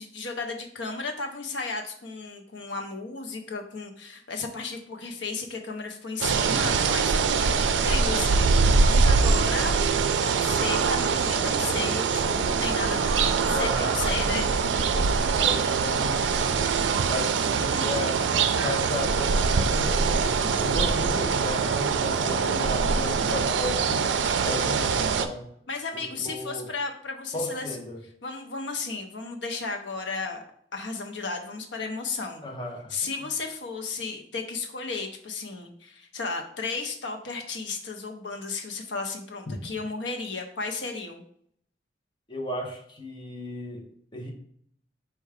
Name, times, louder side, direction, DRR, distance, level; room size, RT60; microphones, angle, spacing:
voice 1, 0.0-9.7 10.2-14.5 14.8-15.0 25.7-27.8 28.2-30.4 30.7-32.4 32.9-41.2, left 4 dB, 80° left, 3 dB, 0.7 m, -34 dB
sound 1, 6.2-25.3, right 5 dB, 85° right, 0.4 m, -23 dB
voice 2, 13.5-14.7 15.3-16.8 17.1-24.1 24.5-25.5 25.9-26.7 27.3-28.0 32.4-33.1 39.5-39.6 42.3-44.3, left 2 dB, 25° left, 0 dB, 0.8 m, -35 dB
4.6 x 2.3 x 4.8 m, 0.65 s
head